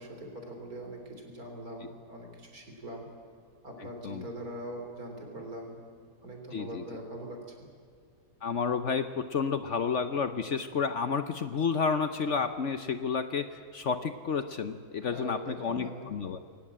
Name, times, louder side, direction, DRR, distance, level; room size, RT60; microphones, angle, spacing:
voice 1, 0.0-3.1 3.6-5.8 6.2-7.4 15.1-16.1, right 1 dB, 60° right, 2 dB, 4.1 m, -42 dB
voice 2, 6.5-6.8 8.4-16.4, left 5 dB, 55° left, 9 dB, 1.0 m, -31 dB
22.0 x 18.5 x 8.7 m, 2.1 s
omnidirectional pair, 1.8 m